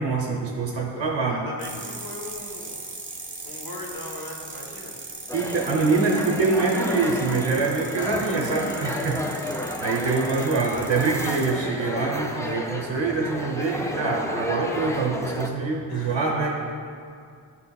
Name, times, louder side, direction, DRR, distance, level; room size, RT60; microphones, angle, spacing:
voice 1, 0.0-1.4 5.3-9.2 9.8-16.5, right 4 dB, 85° right, -1 dB, 0.8 m, -25 dB
voice 2, 0.7-2.7 3.4-4.9 8.1-10.7 15.9-16.7, left 1 dB, 55° left, -1 dB, 1.1 m, -40 dB
sound 1, 1.6-11.5, right 2 dB, 20° right, 0.8 m, -39 dB
sound 2, 5.3-15.5, left 1 dB, 5° left, 0.3 m, -32 dB
11.0 x 4.3 x 2.2 m, 2.3 s
wide cardioid pair, 85°, 44 cm